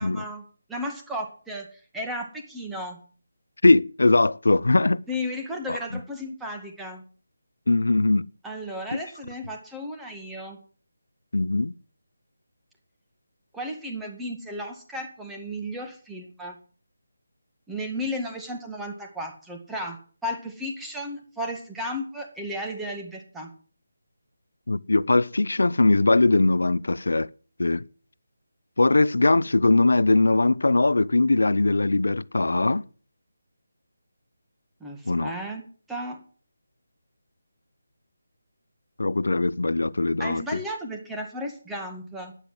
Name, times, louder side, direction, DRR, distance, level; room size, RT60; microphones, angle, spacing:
voice 1, 0.0-3.0 5.1-7.0 8.4-10.6 13.5-16.6 17.7-20.0 20.2-23.5 34.8-35.6 35.9-36.2 40.2-42.3, equal, 5° right, 2.1 m, -34 dB
voice 2, 3.6-5.0 5.7-5.8 7.7-8.3 11.3-11.7 24.7-27.3 27.6-27.8 28.8-32.8 35.1-35.3 39.0-40.6, left 2 dB, 85° left, 0.6 m, -21 dB
12.0 x 10.0 x 7.8 m
figure-of-eight pair, 165°, 0 cm